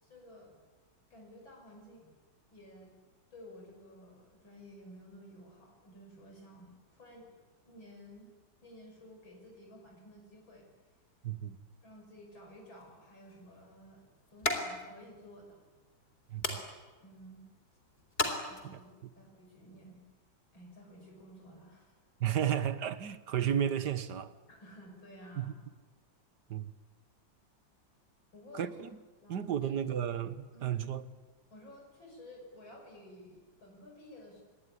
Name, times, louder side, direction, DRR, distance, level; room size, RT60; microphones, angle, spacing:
voice 1, 0.0-0.6 1.1-2.1 2.5-2.9 3.3-7.4 7.6-8.3 8.6-10.7 11.8-14.0 14.3-15.6 17.0-17.4 18.5-18.9 19.2-20.0 20.5-22.0 24.5-25.6 28.3-28.8 29.2-30.0 30.5-30.8 31.5-34.4, equal, 90° left, 6.9 m, -53 dB
voice 2, 11.2-11.6 16.3-16.6 18.7-18.8 22.2-24.4 25.4-25.5 26.5-26.7 28.5-28.9 29.3-31.0, right 9 dB, 60° right, 1.8 m, -33 dB
sound 1, 12.8-19.1, left 2 dB, 30° left, 3.8 m, -40 dB
26.5 x 22.0 x 10.0 m
omnidirectional pair, 2.1 m